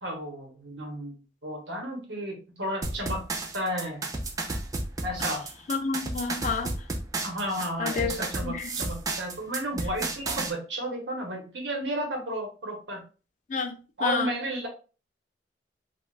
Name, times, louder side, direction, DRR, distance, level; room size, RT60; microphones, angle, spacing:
voice 1, 0.0-3.2 3.5-4.0 5.0-5.4 7.2-13.0 14.0-14.7, equal, 90° right, 2 dB, 1.0 m, -33 dB
sound 1, 2.8-10.5, right 2 dB, 20° right, 0.4 m, -32 dB
voice 2, 5.7-6.7 7.8-8.2 8.4-8.7 13.5-14.3, left 4 dB, 45° left, 7 dB, 0.4 m, -29 dB
3.3 x 2.3 x 2.4 m, 0.35 s
head